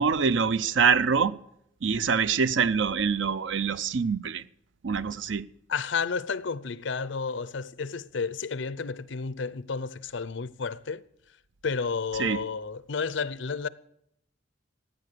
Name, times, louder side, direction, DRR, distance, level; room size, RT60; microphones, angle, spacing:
voice 1, 0.0-1.3 1.8-4.4 4.8-5.4 12.1-12.4, right 5 dB, 80° right, 0.6 m, -25 dB
voice 2, 5.7-11.0 11.6-13.7, left 5 dB, 75° left, 0.6 m, -31 dB
15.5 x 9.5 x 6.8 m
head